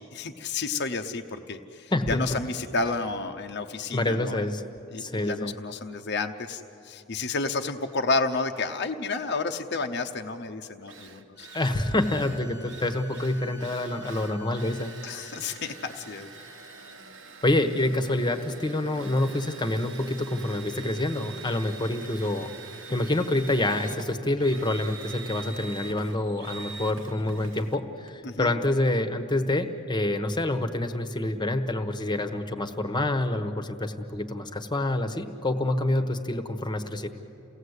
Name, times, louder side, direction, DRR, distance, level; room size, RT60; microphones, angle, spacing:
voice 1, 0.0-4.4 4.9-11.5 15.0-16.3 28.2-28.5, left 3 dB, 55° left, 5 dB, 0.8 m, -31 dB
voice 2, 1.9-2.4 3.9-4.6 5.0-5.5 11.5-15.0 17.4-37.1, left 1 dB, 20° left, 8 dB, 1.1 m, -27 dB
Drill, 10.4-10.5 10.9-29.0, right 4 dB, 80° right, 1.5 m, -45 dB
sound 1, 11.3-17.0, left 1 dB, 20° right, 1.3 m, -50 dB
29.0 x 17.5 x 8.2 m, 2.9 s
head